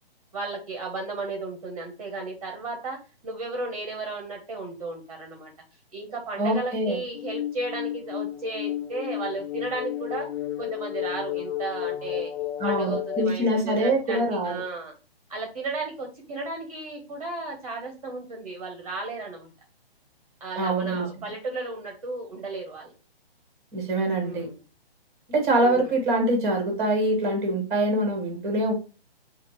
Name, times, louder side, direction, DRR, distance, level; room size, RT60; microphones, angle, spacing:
voice 1, 0.3-5.5 5.9-10.3 10.6-12.3 12.6-14.9 15.3-19.5 20.4-22.9 24.2-24.6 25.6-25.9, right 3 dB, 35° right, 2 dB, 0.9 m, -34 dB
voice 2, 6.4-7.0 12.6-14.6 20.6-21.1 23.7-24.5 25.3-28.7, right 1 dB, 10° right, 1 dB, 1.3 m, -24 dB
sound 1, 7.1-13.3, left 12 dB, 80° left, 0.6 m, -32 dB
5.6 x 2.4 x 3.1 m, 0.32 s
hypercardioid pair, 175°, 30 cm